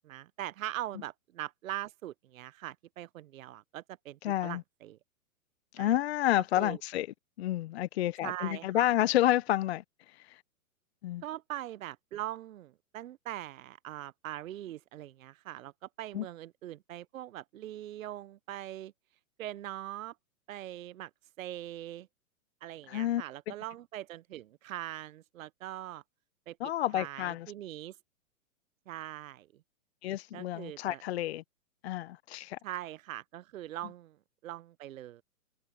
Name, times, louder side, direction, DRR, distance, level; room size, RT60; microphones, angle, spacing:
voice 1, 0.0-5.0 5.8-5.9 6.6-6.8 8.2-8.9 11.2-15.7 16.0-18.9 19.4-20.1 20.5-21.1 21.4-22.1 22.6-26.0 26.5-26.6 26.9-27.9 28.9-29.5 30.3-31.0 32.6-34.2 34.4-35.2, right 14 dB, 65° right, 0.8 m, -41 dB
voice 2, 4.2-4.6 5.7-7.1 7.4-9.8 10.2-10.4 11.0-11.2 16.1-16.3 22.9-23.2 26.6-27.5 30.0-31.4 31.8-32.6, left 13 dB, 50° left, 0.7 m, -30 dB
hypercardioid pair, 150°, 43 cm